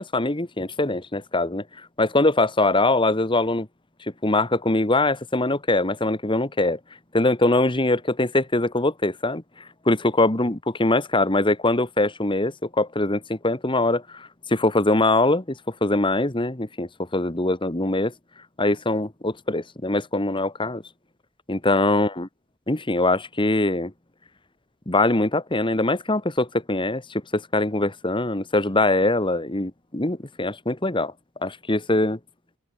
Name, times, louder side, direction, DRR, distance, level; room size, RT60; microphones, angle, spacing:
voice 1, 0.0-1.6 2.0-3.7 4.2-6.8 7.1-9.4 9.8-18.1 18.6-20.8 21.5-22.3 22.7-23.9 24.9-31.1 31.4-32.2, left 2 dB, 20° left, 1.6 m, -22 dB
open air
head